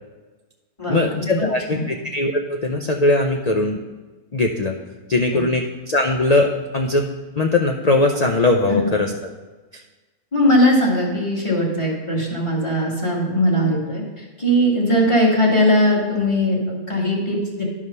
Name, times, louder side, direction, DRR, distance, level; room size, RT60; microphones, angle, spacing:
voice 1, 0.9-3.8 4.3-4.7 5.1-7.1 7.4-9.1, left 2 dB, 85° left, 2 dB, 0.3 m, -20 dB
voice 2, 10.3-17.6, equal, 20° left, -3 dB, 1.9 m, -19 dB
11.0 x 5.0 x 5.4 m, 1.3 s
omnidirectional pair, 1.6 m